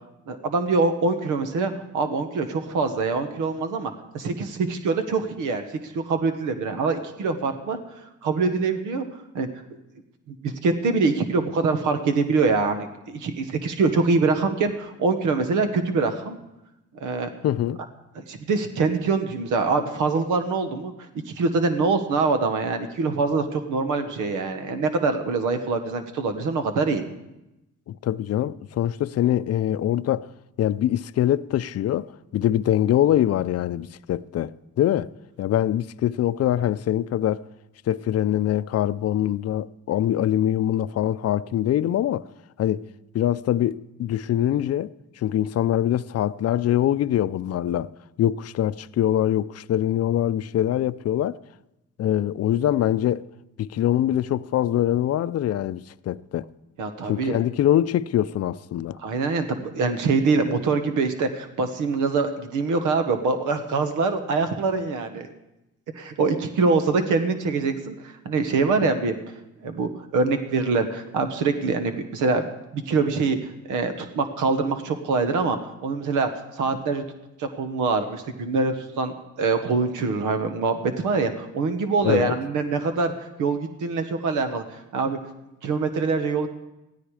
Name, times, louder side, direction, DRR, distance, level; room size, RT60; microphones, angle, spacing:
voice 1, 0.3-7.8 8.2-9.0 9.3-9.5 10.3-16.4 17.0-17.3 18.3-20.9 21.3-27.0 56.8-57.4 59.0-65.3 65.9-69.4 69.6-72.4 72.7-73.4 73.7-76.3 76.5-77.0 77.4-84.6 84.9-85.2 85.6-86.5, right 4 dB, 85° right, 1.4 m, -24 dB
voice 2, 17.4-17.8 27.9-30.3 30.6-35.1 35.4-37.4 37.9-42.3 42.6-42.9 43.1-47.9 48.2-51.4 52.0-53.3 53.6-56.5 57.1-59.0 82.0-82.4, left 11 dB, 55° left, 0.5 m, -23 dB
16.0 x 13.5 x 4.9 m
cardioid pair, 90°, 30 cm